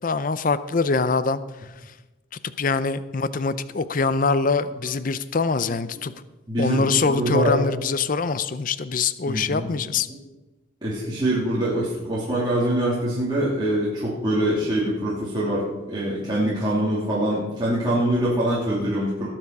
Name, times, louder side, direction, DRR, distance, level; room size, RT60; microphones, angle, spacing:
voice 1, 0.0-1.4 2.6-6.1 6.6-10.1, left 4 dB, 45° left, 14 dB, 0.5 m, -23 dB
voice 2, 6.5-7.8 9.3-9.7 10.1-10.2 10.8-19.3, right 1 dB, 25° right, -8 dB, 2.9 m, -24 dB
19.0 x 7.4 x 4.7 m, 1.1 s
head